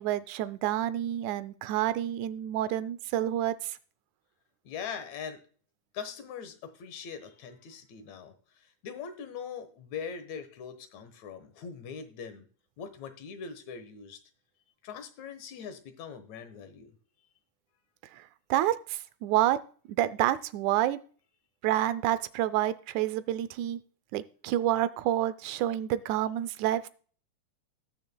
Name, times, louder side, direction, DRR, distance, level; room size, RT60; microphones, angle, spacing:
voice 1, 0.0-3.8 18.5-19.6 20.0-21.0 21.6-23.8 24.1-26.9, right 13 dB, 80° right, 15 dB, 2.0 m, -28 dB
voice 2, 4.6-5.4 5.9-12.5 12.8-14.2 14.8-16.9, left 6 dB, 70° left, 10 dB, 2.3 m, -41 dB
18.5 x 6.4 x 2.2 m, 0.43 s
omnidirectional pair, 3.6 m